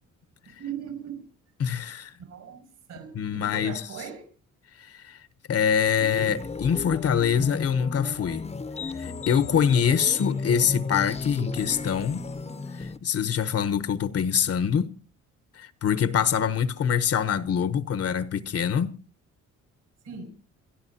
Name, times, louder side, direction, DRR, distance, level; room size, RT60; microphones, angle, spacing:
voice 1, 0.4-1.3 2.2-2.6 2.9-4.3 20.0-20.2, right 7 dB, 75° right, 6.1 m, -38 dB
voice 2, 1.6-2.1 3.1-3.8 4.8-5.2 5.5-8.5 9.0-12.2 12.8-14.9 15.5-19.0, left 8 dB, 50° left, 1.0 m, -25 dB
sound 1, 6.0-13.0, left 4 dB, 20° left, 0.8 m, -34 dB
28.5 x 13.0 x 2.9 m
cardioid pair, 90°, 30 cm